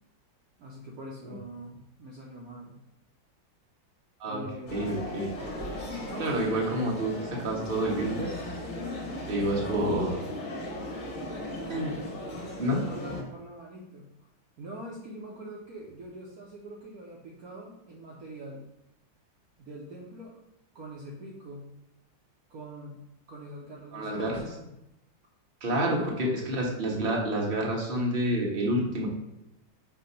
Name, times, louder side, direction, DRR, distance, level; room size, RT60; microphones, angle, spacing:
voice 1, 0.6-2.8 4.2-5.1 6.0-6.3 9.4-10.1 12.9-14.1 14.6-18.6 19.6-20.4 20.7-21.7 22.5-23.0 23.3-24.7 25.7-26.4, right 1 dB, 60° right, -3 dB, 1.2 m, -43 dB
sound 1, 4.7-13.2, left 1 dB, 50° left, 1.8 m, -37 dB
voice 2, 4.7-5.3 6.2-8.3 9.3-10.2 11.7-11.9 12.6-12.8 23.9-24.4 25.6-29.1, right 1 dB, 35° right, -2 dB, 1.3 m, -28 dB
7.1 x 2.8 x 5.1 m, 0.85 s
omnidirectional pair, 2.0 m